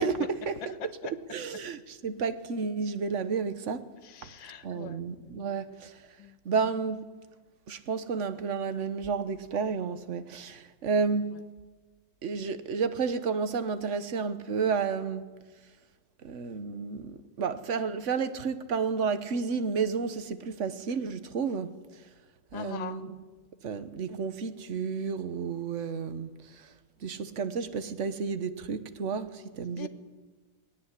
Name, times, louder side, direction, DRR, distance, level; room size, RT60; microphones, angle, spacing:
voice 1, 0.0-0.7 1.0-3.9 4.2-4.3 4.6-6.1 6.4-7.1 7.7-11.4 12.2-15.2 16.2-22.0 22.5-23.1 23.6-26.7 27.0-29.9, right 5 dB, 45° right, 1.2 m, -31 dB
voice 2, 0.6-1.2 4.0-5.5 6.2-6.4 22.5-23.0 29.8-29.9, left 8 dB, 80° left, 1.9 m, -42 dB
20.0 x 17.5 x 9.9 m
omnidirectional pair, 2.1 m